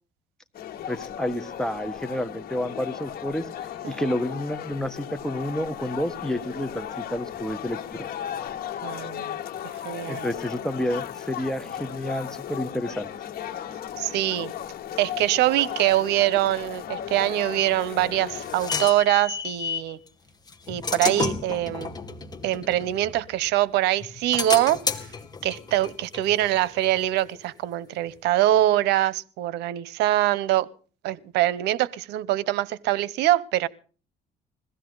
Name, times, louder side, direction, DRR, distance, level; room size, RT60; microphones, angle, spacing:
sound 1, 0.5-18.9, left 10 dB, 60° left, 2.1 m, -36 dB
voice 1, 0.9-3.5 3.9-8.1 10.1-13.1, left 1 dB, 5° left, 1.4 m, -30 dB
voice 2, 3.8-4.1 8.8-9.4 9.8-10.3 14.0-14.5 15.0-20.0 20.7-21.9 22.4-24.8 25.4-30.7 31.0-33.7, right 14 dB, 85° right, 0.9 m, -24 dB
sound 2, 17.7-19.9 20.5-23.6 24.0-27.4, left 5 dB, 25° left, 2.2 m, -32 dB
22.0 x 16.0 x 3.9 m
cardioid pair, 110°, 17 cm